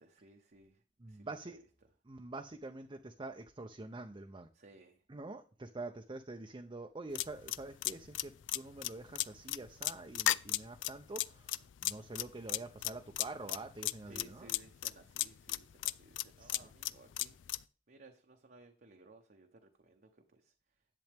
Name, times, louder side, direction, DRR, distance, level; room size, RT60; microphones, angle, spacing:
voice 1, 0.0-1.6 4.5-5.0 14.1-20.5, right 2 dB, 55° right, 2 dB, 0.9 m, -59 dB
voice 2, 1.0-1.6 2.0-4.5 5.1-14.5 16.4-16.6, right 2 dB, 25° right, 4 dB, 0.6 m, -46 dB
sound 1, 7.2-17.6, left 14 dB, 80° left, 0.4 m, -35 dB
10.5 x 7.7 x 3.5 m, 0.37 s
head